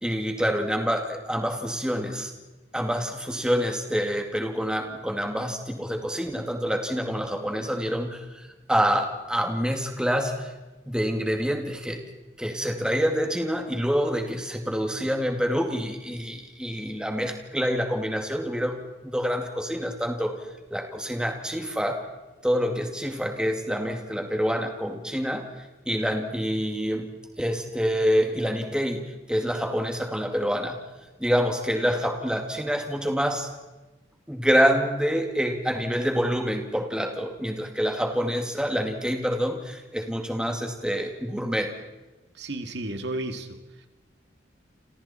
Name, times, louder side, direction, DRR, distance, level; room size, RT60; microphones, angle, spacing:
voice 1, 0.0-2.3 2.7-10.5 10.9-12.0 12.4-20.4 20.7-22.1 22.4-27.1 27.4-30.8 31.2-33.5 34.3-41.7, equal, 5° right, 3 dB, 2.3 m, -27 dB
voice 2, 42.3-43.9, right 1 dB, 65° right, 6 dB, 2.1 m, -33 dB
30.0 x 27.0 x 4.4 m, 1.1 s
head